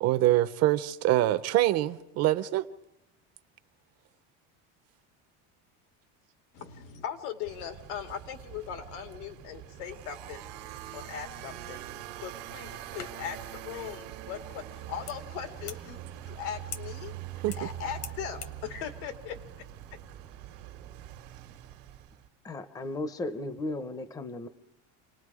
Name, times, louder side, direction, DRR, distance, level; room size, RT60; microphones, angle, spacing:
voice 1, 0.0-2.6 17.4-17.7, right 15 dB, 50° right, 0.8 m, -25 dB
voice 2, 6.5-10.4 10.9-11.8 12.2-17.1 17.6-19.7, left 9 dB, 85° left, 2.2 m, -39 dB
sound 1, 7.4-22.3, right 12 dB, 80° right, 1.5 m, -43 dB
sound 2, 12.8-18.6, left 9 dB, 50° left, 1.1 m, -48 dB
voice 3, 22.4-24.5, left 2 dB, 10° left, 0.7 m, -35 dB
28.5 x 19.0 x 4.9 m
cardioid pair, 165°, 33 cm